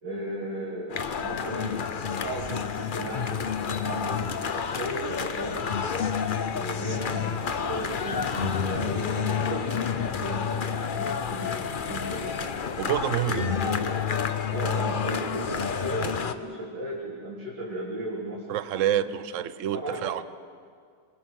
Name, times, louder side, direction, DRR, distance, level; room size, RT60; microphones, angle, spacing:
voice 1, 0.0-5.6 6.5-10.5 10.9-12.5 13.3-14.0 14.5-19.0 19.7-20.1, right 1 dB, 75° right, -7 dB, 4.0 m, -36 dB
sound 1, 0.9-16.3, left 6 dB, 45° left, 0.7 m, -29 dB
voice 2, 12.8-13.5 18.5-20.2, right 11 dB, 55° right, 14 dB, 1.0 m, -27 dB
27.5 x 22.0 x 6.4 m, 2.1 s
omnidirectional pair, 1.8 m